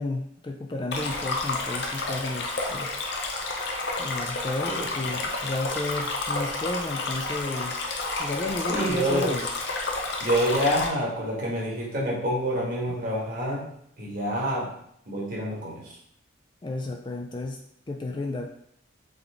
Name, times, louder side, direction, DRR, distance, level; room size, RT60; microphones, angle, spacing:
voice 1, 0.0-2.9 4.0-7.9 8.2-9.5 16.6-17.6 17.9-18.5, left 2 dB, 25° left, 2 dB, 0.3 m, -32 dB
Stream, 0.9-10.9, left 3 dB, 55° left, 0.7 m, -30 dB
voice 2, 4.6-5.3 8.7-9.4 10.2-13.7 14.0-14.7 15.1-16.0, equal, 45° right, -3 dB, 1.3 m, -27 dB
3.8 x 3.6 x 3.4 m, 0.70 s
head